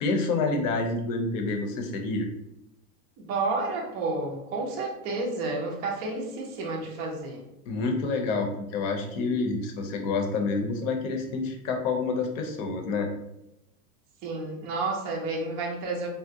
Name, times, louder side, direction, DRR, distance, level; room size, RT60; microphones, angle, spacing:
voice 1, 0.0-2.3 7.7-13.1, left 3 dB, 60° left, 3 dB, 0.8 m, -28 dB
voice 2, 3.2-7.4 14.2-16.1, right 3 dB, 25° right, -1 dB, 0.4 m, -31 dB
3.7 x 2.1 x 2.6 m, 0.87 s
hypercardioid pair, 130°, 45 cm